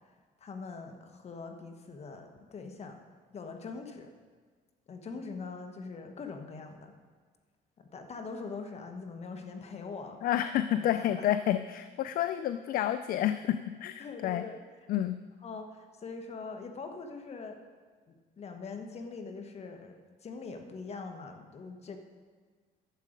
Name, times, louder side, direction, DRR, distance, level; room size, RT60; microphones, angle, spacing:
voice 1, 0.4-3.0 3.3-4.1 4.9-6.9 7.8-10.2 10.7-11.3 14.0-14.6 15.4-17.6 18.1-19.9 20.2-22.0, left 4 dB, 40° left, 5 dB, 1.2 m, -42 dB
voice 2, 10.2-14.4 14.9-15.2, left 11 dB, 60° left, 11 dB, 0.4 m, -29 dB
11.5 x 7.4 x 5.1 m, 1.5 s
cardioid pair, 110°, 17 cm